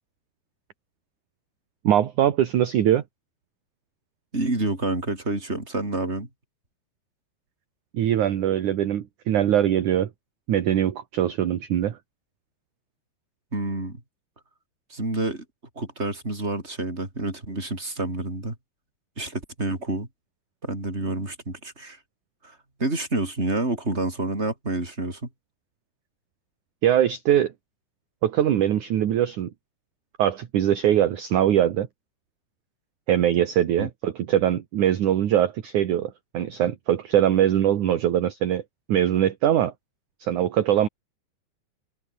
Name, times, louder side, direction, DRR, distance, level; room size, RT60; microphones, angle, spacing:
voice 1, 1.8-3.0 7.9-10.1 10.5-12.0 26.8-27.5 28.2-29.5 30.2-31.9 33.1-38.6 38.9-39.7 40.2-40.9, right 11 dB, 55° right, 2.7 m, -22 dB
voice 2, 4.3-6.3 13.5-14.0 14.9-15.4 15.8-18.6 19.2-20.1 20.6-22.0 22.4-25.3 33.8-33.9, right 2 dB, 15° right, 5.7 m, -28 dB
omnidirectional pair, 4.7 m